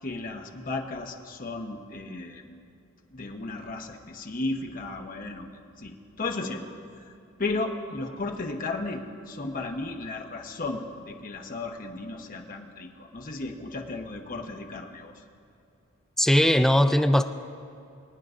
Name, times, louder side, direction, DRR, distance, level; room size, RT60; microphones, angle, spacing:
voice 1, 0.0-2.6 3.1-5.5 5.8-6.6 7.4-15.1, left 3 dB, 40° left, 3 dB, 0.9 m, -34 dB
voice 2, 16.2-17.2, left 1 dB, ahead, 8 dB, 0.3 m, -19 dB
24.5 x 9.2 x 2.5 m, 2.5 s
head